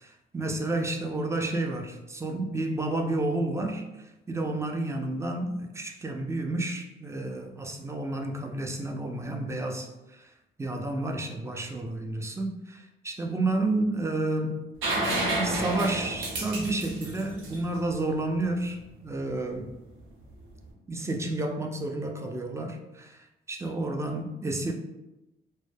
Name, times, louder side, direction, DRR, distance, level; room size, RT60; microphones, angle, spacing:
voice 1, 0.0-10.3 10.6-14.7 15.3-19.7 20.9-24.7, right 2 dB, 15° right, 3 dB, 0.3 m, -31 dB
sound 1, 14.8-18.5 20.4-20.5, right 1 dB, 90° right, 0.7 m, -30 dB
2.2 x 2.1 x 3.1 m, 0.97 s
cardioid pair, 90°, 20 cm